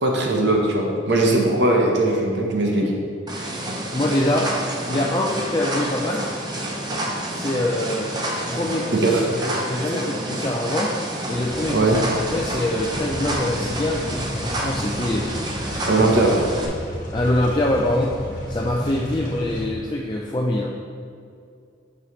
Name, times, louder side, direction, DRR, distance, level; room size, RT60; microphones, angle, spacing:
voice 1, 0.0-2.9 9.0-9.3 11.7-12.0 15.8-16.3, right 2 dB, 65° right, 0 dB, 1.1 m, -19 dB
sound 1, 3.3-16.7, right 1 dB, 20° right, 0.8 m, -29 dB
voice 2, 3.9-4.6 4.9-6.3 7.3-8.1 8.5-10.9 11.3-11.9 12.3-15.3 17.1-18.2 18.5-20.7, left 1 dB, 25° left, -2 dB, 0.4 m, -24 dB
sound 2, 11.3-19.7, left 1 dB, 45° left, 1.2 m, -33 dB
8.6 x 5.6 x 3.2 m, 2.4 s
head